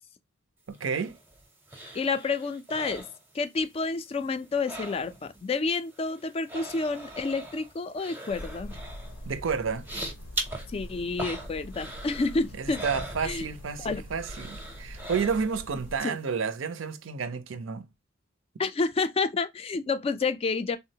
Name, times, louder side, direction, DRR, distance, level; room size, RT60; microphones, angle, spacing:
sound 1, 0.7-3.8 4.1-5.4 5.7-13.8 14.2-15.7 16.1-16.2, right 1 dB, 10° right, 0.6 m, -41 dB
voice 1, 0.7-1.2 9.3-9.9 12.6-17.9, right 5 dB, 75° right, 0.5 m, -31 dB
voice 2, 1.9-3.1 3.3-8.8 10.7-12.8 13.2-13.5 13.8-14.0 16.0-16.2 18.6-20.8, left 4 dB, 30° left, 0.3 m, -29 dB
sound 2, 8.3-16.0, equal, 90° left, 0.7 m, -43 dB
3.5 x 2.0 x 2.6 m
head